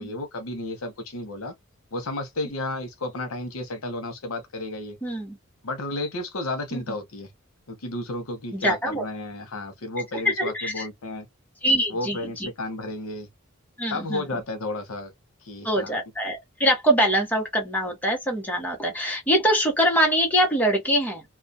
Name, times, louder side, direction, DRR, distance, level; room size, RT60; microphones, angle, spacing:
voice 1, 0.0-1.5 1.9-5.0 5.6-7.3 7.7-11.3 11.9-13.3 13.9-15.1 15.4-16.0, left 2 dB, 85° left, 0.7 m, -32 dB
voice 2, 5.0-5.4 6.7-6.8 8.5-9.0 10.2-10.9 11.6-12.5 13.8-14.3 15.6-21.2, equal, 10° left, 0.8 m, -23 dB
2.3 x 2.1 x 2.6 m
head